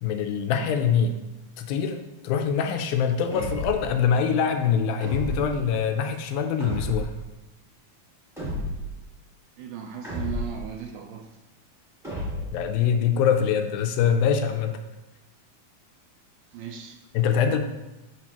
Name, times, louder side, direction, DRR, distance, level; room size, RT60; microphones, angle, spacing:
voice 1, 0.0-1.2 1.6-7.1 12.5-14.8 17.1-17.6, left 7 dB, 80° left, 6 dB, 2.3 m, -24 dB
sound 1, 3.3-4.0 5.0-5.6 6.6-7.3 8.4-9.0 10.0-10.7 12.0-12.7, equal, 5° right, 0.4 m, -32 dB
voice 2, 9.6-11.4 16.5-17.0, right 7 dB, 80° right, 3 dB, 2.1 m, -37 dB
7.0 x 6.3 x 2.9 m, 0.99 s
omnidirectional pair, 4.3 m